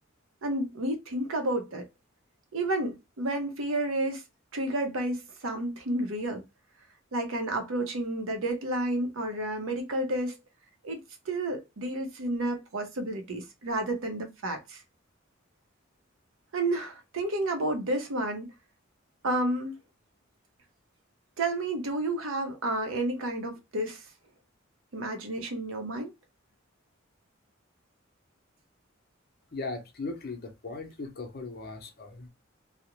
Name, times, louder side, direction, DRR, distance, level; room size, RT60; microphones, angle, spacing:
voice 1, 0.4-1.9 2.5-4.2 4.5-6.4 7.1-10.4 10.8-14.8 16.5-18.5 19.2-19.8 21.4-24.0 24.9-26.1, right 1 dB, 85° right, 0.7 m, -31 dB
voice 2, 29.5-32.3, left 3 dB, 50° left, 0.7 m, -38 dB
2.4 x 2.0 x 2.8 m
head